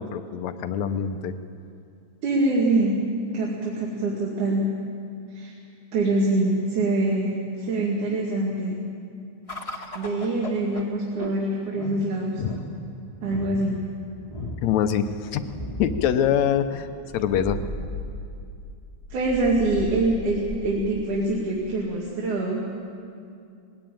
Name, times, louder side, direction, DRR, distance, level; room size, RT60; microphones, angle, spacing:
voice 1, 0.0-1.3 12.4-12.5 14.4-15.5 15.8-17.6, left 9 dB, 75° left, 10 dB, 2.1 m, -25 dB
voice 2, 2.2-3.0 3.3-4.6 5.3-5.5 5.9-8.8 9.9-12.4 13.2-13.8 19.1-22.6, right 2 dB, 85° right, -3 dB, 3.6 m, -24 dB
sound 1, 9.5-22.1, left 1 dB, 20° left, 0.9 m, -37 dB
20.5 x 16.5 x 9.0 m, 2.4 s
omnidirectional pair, 3.4 m